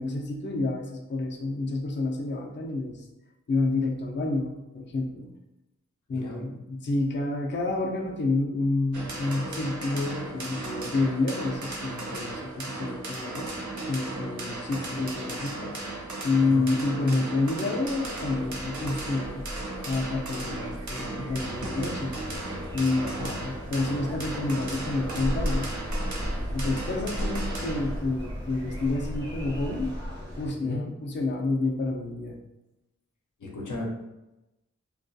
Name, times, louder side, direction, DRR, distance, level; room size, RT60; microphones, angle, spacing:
voice 1, 0.0-3.1 3.5-5.3 6.1-13.5 13.9-15.7 16.2-19.4 19.9-22.2 22.7-25.7 26.5-30.0 30.4-32.4, left 2 dB, 40° left, 1 dB, 0.4 m, -29 dB
voice 2, 6.1-6.4 16.4-16.7 23.2-23.7 30.6-30.9 33.4-33.8, left 2 dB, 90° left, -2 dB, 0.5 m, -36 dB
sound 1, 8.9-28.0, right 2 dB, 75° right, 0.5 m, -36 dB
sound 2, 17.8-29.9, equal, 15° right, 0.5 m, -42 dB
sound 3, 21.4-30.5, equal, 35° right, 0.8 m, -35 dB
2.3 x 2.3 x 2.5 m, 0.98 s
wide cardioid pair, 40°, 30 cm